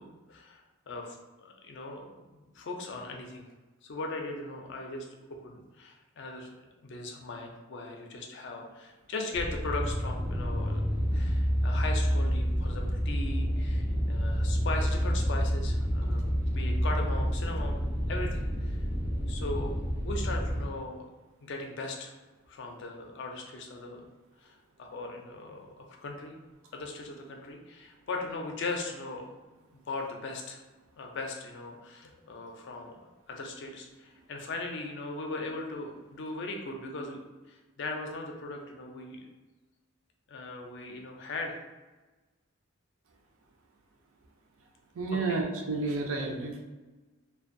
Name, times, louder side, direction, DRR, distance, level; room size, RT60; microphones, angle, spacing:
voice 1, 0.0-3.5 3.8-5.1 5.4-6.5 6.8-18.8 19.3-21.1 21.4-22.1 22.5-24.0 24.4-24.5 24.8-26.3 26.7-29.3 29.9-30.6 31.0-37.2 37.5-39.2 40.3-41.6 45.1-45.4, left 2 dB, 55° left, 2 dB, 0.4 m, -39 dB
sound 1, 9.3-20.7, equal, 10° right, 0.5 m, -29 dB
voice 2, 44.9-46.6, right 3 dB, 70° right, 2 dB, 0.4 m, -31 dB
2.5 x 2.2 x 2.5 m, 1.2 s
head